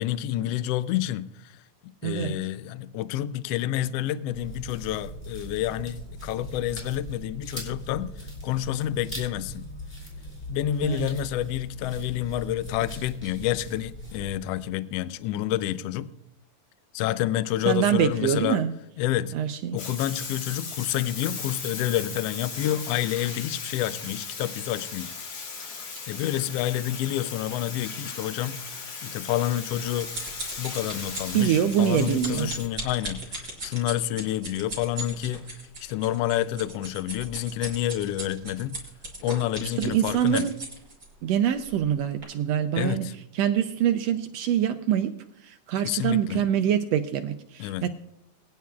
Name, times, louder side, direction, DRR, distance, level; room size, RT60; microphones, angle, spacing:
voice 1, 0.0-1.3 2.0-8.1 8.4-9.7 10.5-16.1 16.9-18.6 19.0-19.3 19.7-25.1 26.1-30.1 30.6-35.5 35.8-38.8 39.2-40.5 42.7-43.1 45.8-46.4 47.6-47.9, left 13 dB, 85° left, 1.4 m, -29 dB
voice 2, 2.0-2.4 10.8-11.2 17.7-18.7 19.3-19.8 31.3-32.5 39.8-40.5 41.2-43.1 43.3-45.1 45.4-47.9, right 9 dB, 75° right, 1.6 m, -25 dB
sound 1, 4.3-14.3, equal, 15° left, 3.1 m, -40 dB
Bathtub (filling or washing), 19.8-32.7, left 5 dB, 50° left, 2.2 m, -38 dB
sound 2, 29.4-41.1 41.7-41.9 42.2-42.3, right 2 dB, 35° right, 5.4 m, -38 dB
22.5 x 10.5 x 2.4 m
omnidirectional pair, 3.3 m